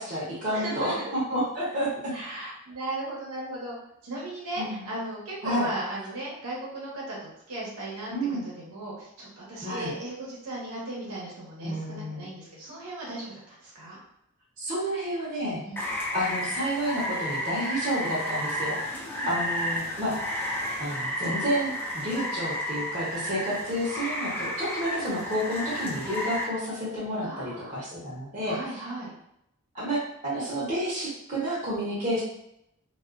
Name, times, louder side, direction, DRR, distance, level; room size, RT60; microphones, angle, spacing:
voice 1, 0.0-2.1 4.6-4.9 5.4-5.7 8.1-8.4 9.6-9.9 11.6-12.3 14.6-15.6 16.1-18.8 19.3-20.2 20.8-28.6 29.7-32.2, equal, 35° right, -8 dB, 0.7 m, -30 dB
voice 2, 0.5-1.1 2.1-3.7 4.0-14.0 15.6-15.8 18.9-19.3 27.2-27.8 28.4-29.1, right 2 dB, 80° right, -5 dB, 0.9 m, -36 dB
Rain, 15.8-26.4, equal, 10° left, 0.4 m, -32 dB
2.3 x 2.3 x 2.4 m, 0.78 s
head